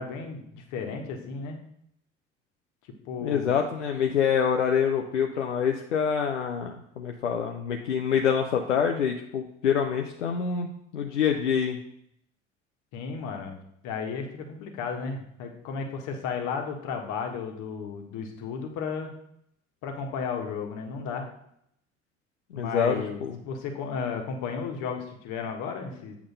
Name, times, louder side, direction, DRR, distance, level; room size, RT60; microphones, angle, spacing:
voice 1, 0.0-1.6 2.8-3.5 12.9-13.6 13.8-19.1 19.8-21.3 22.5-26.2, left 5 dB, 60° left, 3 dB, 1.4 m, -34 dB
voice 2, 3.2-10.7 10.9-11.8 22.5-23.4, left 7 dB, 85° left, 3 dB, 0.6 m, -26 dB
8.0 x 3.5 x 5.2 m, 0.72 s
figure-of-eight pair, 55°, 35 cm